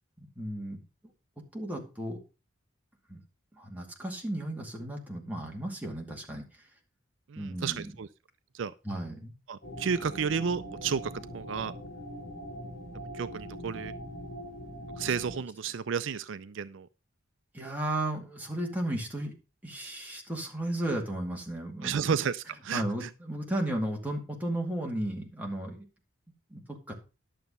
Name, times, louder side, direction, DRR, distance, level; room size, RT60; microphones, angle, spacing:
voice 1, 0.2-0.8 1.5-2.2 3.1-3.2 3.5-6.4 7.4-7.9 8.8-9.3 15.1-15.2 17.5-19.3 19.6-22.1 22.7-25.9 26.5-26.9, right 1 dB, 10° right, 2.2 m, -34 dB
voice 2, 7.3-8.1 8.5-8.7 9.5-11.7 13.1-13.9 15.0-16.9 21.8-23.1, right 6 dB, 60° right, 0.4 m, -32 dB
sound 1, 9.6-15.4, equal, 40° left, 3.0 m, -42 dB
11.5 x 7.0 x 5.4 m
head